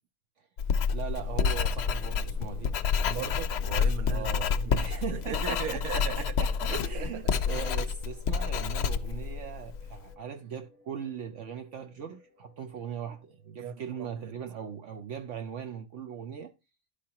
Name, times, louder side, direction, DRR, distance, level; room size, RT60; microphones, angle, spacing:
Writing, 0.6-10.0, left 6 dB, 65° left, 0.7 m, -29 dB
voice 1, 0.9-2.7 4.1-16.5, right 8 dB, 65° right, 0.9 m, -40 dB
sound 1, 1.1-13.7, left 2 dB, 5° right, 1.5 m, -56 dB
voice 2, 3.1-4.3 4.6-6.3 6.7-7.4 13.6-14.3, right 8 dB, 85° right, 1.1 m, -38 dB
11.5 x 5.0 x 2.8 m
omnidirectional pair, 1.5 m